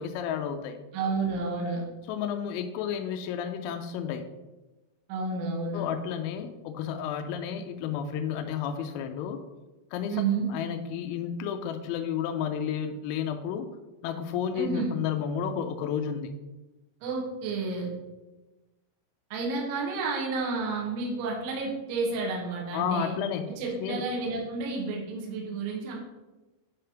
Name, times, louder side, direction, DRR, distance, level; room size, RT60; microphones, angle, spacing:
voice 1, 0.0-0.8 2.1-4.3 5.7-9.4 9.9-10.2 10.5-13.7 14.0-16.3 22.7-23.6 23.8-24.0, left 8 dB, 90° left, 6 dB, 3.2 m, -31 dB
voice 2, 0.9-1.8 5.1-5.8 10.1-10.5 14.5-14.9 17.0-17.9 19.3-23.1 23.6-25.9, right 4 dB, 70° right, -2 dB, 3.5 m, -30 dB
9.5 x 3.4 x 5.7 m, 1.1 s
omnidirectional pair, 5.8 m